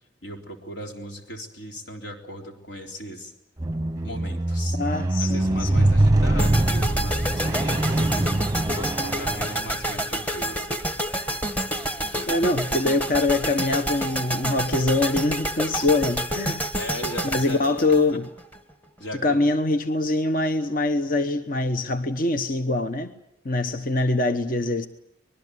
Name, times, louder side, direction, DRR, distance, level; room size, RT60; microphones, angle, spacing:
voice 1, 0.2-3.3 4.0-4.8 5.2-10.7 16.8-17.7 18.1-18.2 19.0-19.5, equal, 75° left, 3.8 m, -37 dB
Squeak, 3.6-9.9 10.7-10.8, right 1 dB, 20° right, 0.8 m, -23 dB
voice 2, 4.8-5.9 12.3-16.7 17.2-18.3 19.2-23.1 23.4-24.9, left 2 dB, 50° left, 1.1 m, -24 dB
sound 1, 6.4-18.6, right 1 dB, 10° left, 1.5 m, -29 dB
25.0 x 21.0 x 8.2 m
head